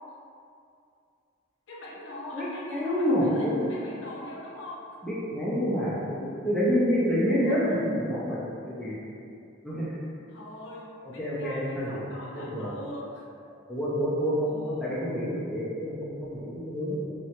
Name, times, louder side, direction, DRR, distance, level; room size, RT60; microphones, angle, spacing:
voice 1, 1.7-4.8 7.2-7.6 10.3-13.2 14.5-15.0, left 1 dB, 60° left, -5 dB, 0.5 m, -41 dB
voice 2, 2.3-3.7 5.0-8.4 8.6-8.9 9.6-9.9 11.2-12.1 12.3-12.7 13.5-17.1, equal, ahead, -9 dB, 0.4 m, -28 dB
2.7 x 2.1 x 2.8 m, 2.5 s
head